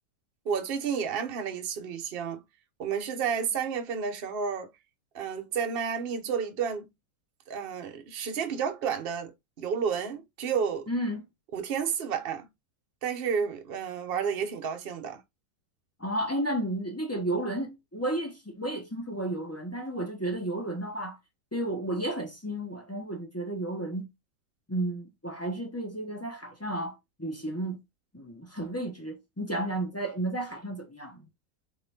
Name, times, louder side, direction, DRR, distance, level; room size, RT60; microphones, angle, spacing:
voice 1, 0.4-2.4 2.8-4.7 5.1-6.9 7.5-9.3 9.6-10.9 11.5-12.5 13.0-15.2, right 7 dB, 45° right, 0.8 m, -31 dB
voice 2, 10.9-11.2 16.0-21.2 21.5-24.1 24.7-27.8 28.1-31.2, right 1 dB, 20° left, 0.4 m, -32 dB
3.9 x 3.6 x 3.4 m
omnidirectional pair, 2.0 m